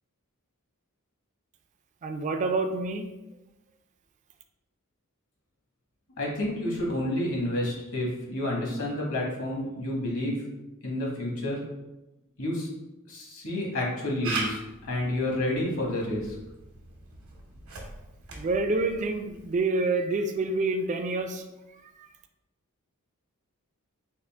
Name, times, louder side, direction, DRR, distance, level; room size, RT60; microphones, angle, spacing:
voice 1, 2.0-3.0 18.4-21.4, right 3 dB, 35° right, 6 dB, 0.3 m, -27 dB
voice 2, 6.2-10.4 10.8-11.6 12.4-12.7 13.1-16.3, left 1 dB, 65° left, -2 dB, 1.1 m, -30 dB
Camera, 14.2-19.6, right 3 dB, 70° right, 0.9 m, -40 dB
3.7 x 2.4 x 3.4 m, 0.98 s
head